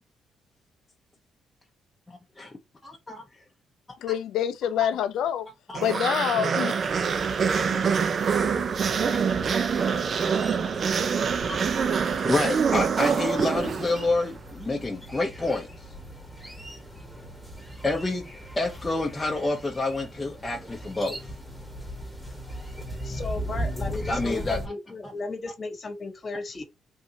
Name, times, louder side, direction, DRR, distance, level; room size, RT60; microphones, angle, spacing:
voice 1, 2.1-2.5 2.8-3.2 4.1-4.2 4.8-4.9 5.7-5.9 7.5-7.9 12.2-15.7 17.8-18.3 18.6-21.3 24.1-24.7 25.0-25.1, left 2 dB, 20° left, 0.8 m, -28 dB
voice 2, 4.0-5.5 5.8-6.8, left 10 dB, 80° left, 0.4 m, -26 dB
sound 1, 5.7-14.2, right 6 dB, 50° right, 0.4 m, -25 dB
sound 2, 6.8-24.7, equal, 10° right, 1.3 m, -39 dB
voice 3, 23.0-26.6, left 3 dB, 35° left, 1.2 m, -35 dB
3.5 x 2.6 x 2.8 m
cardioid pair, 90°, 0 cm